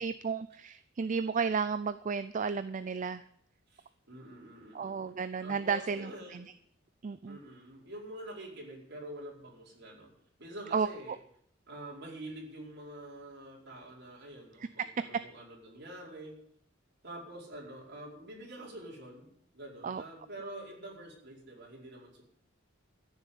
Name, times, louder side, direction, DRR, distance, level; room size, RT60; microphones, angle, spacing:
voice 1, 0.0-3.2 4.7-6.5 7.0-7.4 10.7-10.9 14.6-15.0 19.8-20.0, right 5 dB, 40° right, 13 dB, 0.4 m, -33 dB
voice 2, 3.7-6.5 7.3-10.1 10.4-11.2 11.7-16.4 17.0-22.2, right 1 dB, 55° right, -2 dB, 4.8 m, -46 dB
14.0 x 7.0 x 8.4 m, 0.67 s
head